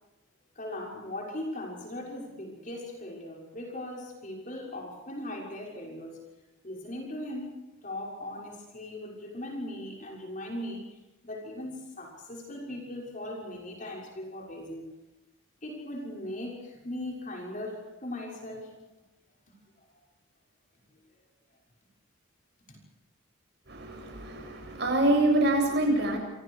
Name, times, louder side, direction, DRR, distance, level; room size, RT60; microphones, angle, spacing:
voice 1, 0.5-6.2 6.6-11.0 11.2-14.9 15.6-18.9 20.9-21.0 22.7-22.8, left 1 dB, 40° left, -1 dB, 6.4 m, -39 dB
voice 2, 23.7-26.2, right 1 dB, 55° right, 2 dB, 7.9 m, -25 dB
29.0 x 28.0 x 4.9 m, 1.0 s
head